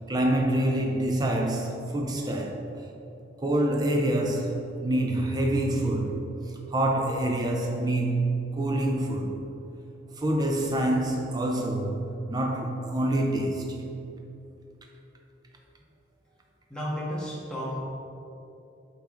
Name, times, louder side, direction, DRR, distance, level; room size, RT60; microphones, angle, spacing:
voice 1, 0.1-2.6 3.4-6.2 6.7-9.3 10.2-13.8, right 1 dB, 20° right, 0.5 m, -26 dB
voice 2, 16.7-17.8, equal, 5° left, 1.4 m, -32 dB
8.2 x 4.9 x 3.8 m
head